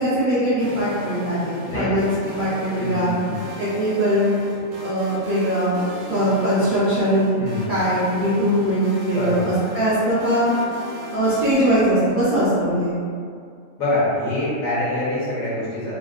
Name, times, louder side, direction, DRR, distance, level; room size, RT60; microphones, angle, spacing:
voice 1, 0.0-2.1 2.4-3.1 3.6-4.4 4.8-5.8 6.1-7.4 7.7-10.5 11.1-13.0, equal, 60° right, -11 dB, 0.5 m, -21 dB
sound 1, 0.6-11.5, equal, 80° right, 1.0 m, -36 dB
voice 2, 2.8-3.4 7.4-7.7 9.1-9.5 13.8-16.0, left 1 dB, 75° left, -9 dB, 1.3 m, -25 dB
3.4 x 2.0 x 2.3 m, 2.3 s
omnidirectional pair, 1.5 m